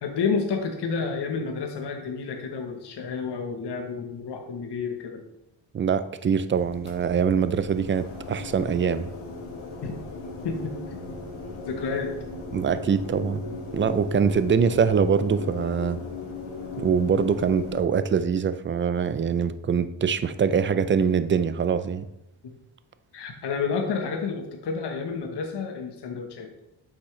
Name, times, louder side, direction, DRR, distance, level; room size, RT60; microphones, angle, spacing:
voice 1, 0.0-5.2 9.8-10.0 10.4-11.0 11.7-12.2 22.4-22.5 23.1-26.5, left 5 dB, 55° left, 3 dB, 1.1 m, -30 dB
voice 2, 5.7-9.1 12.5-16.0 16.8-22.1, right 6 dB, 25° right, 13 dB, 0.4 m, -24 dB
sound 1, 6.5-17.8, left 4 dB, 75° left, 1.9 m, -37 dB
8.1 x 5.9 x 3.2 m, 0.86 s
cardioid pair, 90°, 48 cm